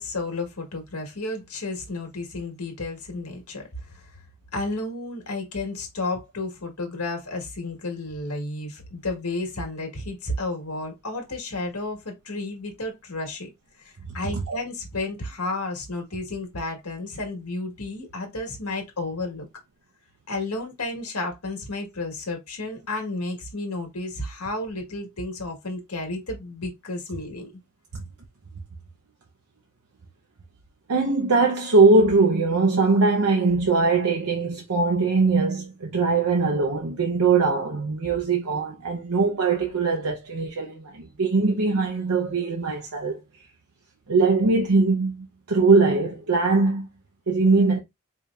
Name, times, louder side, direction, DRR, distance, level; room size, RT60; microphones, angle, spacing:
voice 1, 0.0-3.7 3.9-4.1 4.5-13.5 13.8-19.5 20.3-27.5, left 2 dB, 80° left, 1.6 m, -32 dB
voice 2, 30.9-43.2 44.1-46.9 47.3-47.8, right 3 dB, 75° right, 0.8 m, -21 dB
5.0 x 2.8 x 2.4 m
head